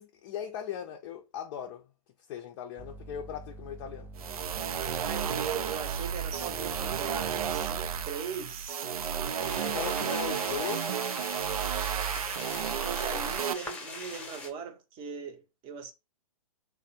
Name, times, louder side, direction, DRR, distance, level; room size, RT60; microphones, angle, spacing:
voice 1, 0.0-1.9 2.3-4.1 9.6-10.9 13.1-13.4, left 9 dB, 40° left, 0.5 m, -38 dB
sound 1, 2.8-8.1, right 2 dB, 10° right, 0.4 m, -46 dB
sound 2, 4.2-13.5, right 8 dB, 80° right, 0.5 m, -32 dB
voice 2, 4.7-9.7 12.8-15.9, right 6 dB, 30° right, 0.8 m, -40 dB
sound 3, 9.4-14.5, left 2 dB, 5° left, 0.8 m, -42 dB
3.2 x 2.1 x 4.1 m
hypercardioid pair, 120°, 18 cm